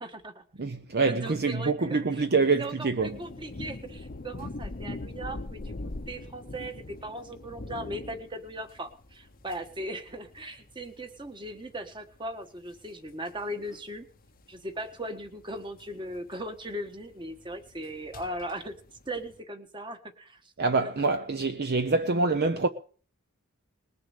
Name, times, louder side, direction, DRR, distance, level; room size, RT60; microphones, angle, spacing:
voice 1, 0.0-0.4 1.1-2.2 2.6-14.1 14.5-18.7 19.1-20.4 20.8-20.9, right 1 dB, 20° right, 1.4 m, -38 dB
voice 2, 0.6-3.2 20.6-22.7, right 3 dB, 45° right, 0.7 m, -26 dB
sound 1, 3.0-19.4, left 2 dB, 40° left, 0.8 m, -43 dB
20.0 x 6.9 x 6.6 m
head